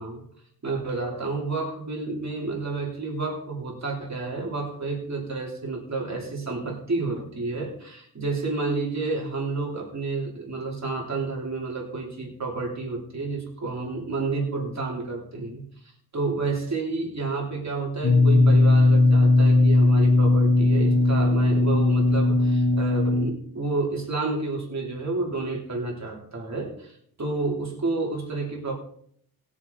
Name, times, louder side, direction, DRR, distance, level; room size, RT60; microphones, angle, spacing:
voice 1, 0.6-28.7, right 3 dB, 45° right, -1 dB, 3.3 m, -30 dB
sound 1, 18.0-23.3, left 2 dB, 60° left, 2.4 m, -18 dB
20.0 x 7.1 x 4.0 m, 0.64 s
wide cardioid pair, 115°, 38 cm